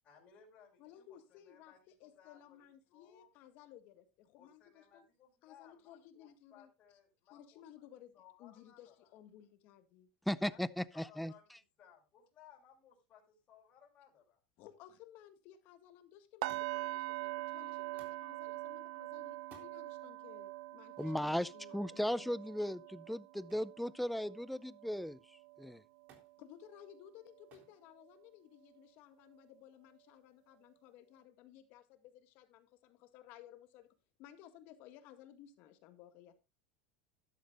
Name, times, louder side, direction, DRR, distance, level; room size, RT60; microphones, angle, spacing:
voice 1, 0.0-3.3 4.4-7.8 8.1-9.1 10.5-11.5 11.8-14.4, left 8 dB, 35° left, 5.1 m, -63 dB
voice 2, 0.8-5.1 5.4-6.7 7.3-10.1 14.6-22.3 26.4-33.9 34.2-36.3, left 11 dB, 55° left, 1.9 m, -58 dB
voice 3, 10.3-11.3 21.0-25.2 25.6-25.8, equal, ahead, 0.5 m, -37 dB
sound 1, 16.4-26.3 26.7-27.0 27.4-27.5, right 18 dB, 75° right, 0.7 m, -44 dB
Thump thud, 16.5-17.0 18.0-18.3 19.4-19.7 21.0-21.2 23.5-23.8 24.2-24.7 26.1-26.4 27.5-27.8 28.7-29.2 30.2-30.3, right 5 dB, 45° right, 3.7 m, -62 dB
13.0 x 11.5 x 2.5 m
supercardioid pair, 135°, 4 cm